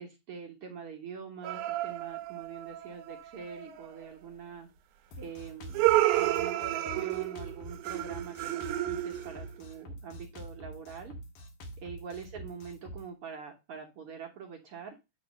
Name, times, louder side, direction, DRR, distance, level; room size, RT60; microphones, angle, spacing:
voice 1, 0.0-4.7 5.2-5.8 6.2-11.1 11.8-15.0, right 6 dB, 60° right, 2 dB, 1.5 m, -44 dB
sound 1, 1.4-4.1 5.7-9.6, right 15 dB, 75° right, 2.0 m, -31 dB
Drum kit, 5.1-13.1, right 1 dB, 65° left, 2.7 m, -46 dB
8.9 x 3.0 x 6.4 m, 0.25 s
omnidirectional pair, 3.9 m